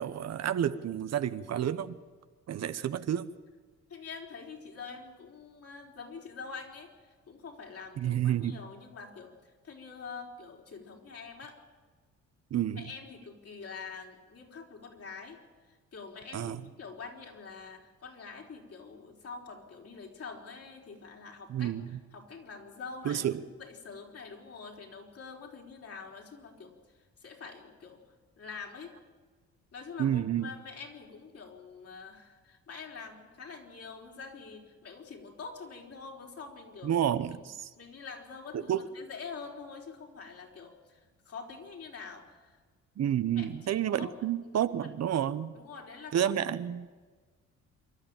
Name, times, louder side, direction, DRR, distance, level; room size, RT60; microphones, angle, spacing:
voice 1, 0.0-2.0 2.5-3.3 8.0-8.6 12.5-12.8 16.3-16.6 21.5-22.0 23.0-23.4 30.0-30.5 36.8-37.7 38.5-38.8 43.0-45.5 46.1-46.9, right 10 dB, 60° right, 13 dB, 1.0 m, -30 dB
voice 2, 3.9-11.6 12.8-15.4 15.7-21.7 22.1-23.2 23.6-28.0 28.4-28.9 29.7-37.0 37.8-42.6 43.3-44.1 44.4-44.7 45.5-46.3, left 5 dB, 50° left, 1 dB, 4.5 m, -46 dB
27.0 x 12.0 x 9.0 m, 1.4 s
cardioid pair, 90°, 30 cm